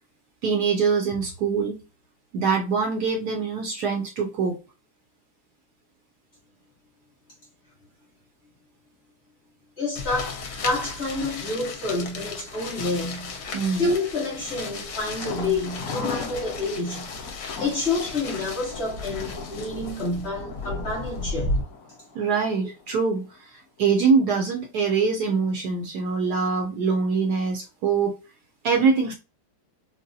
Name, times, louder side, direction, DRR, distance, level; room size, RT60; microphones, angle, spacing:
voice 1, 0.4-1.8 2.3-4.6 13.5-13.9 22.1-28.1 28.6-29.1, right 5 dB, 70° right, 1.0 m, -24 dB
voice 2, 9.8-13.3 13.8-17.1 17.4-21.5, left 2 dB, 40° left, 1.1 m, -28 dB
sound 1, 10.0-21.6, left 3 dB, 65° left, 1.1 m, -35 dB
Thunder, 15.2-23.0 23.3-23.4 23.8-23.9, left 5 dB, 90° left, 0.7 m, -38 dB
3.9 x 2.0 x 2.5 m
omnidirectional pair, 2.0 m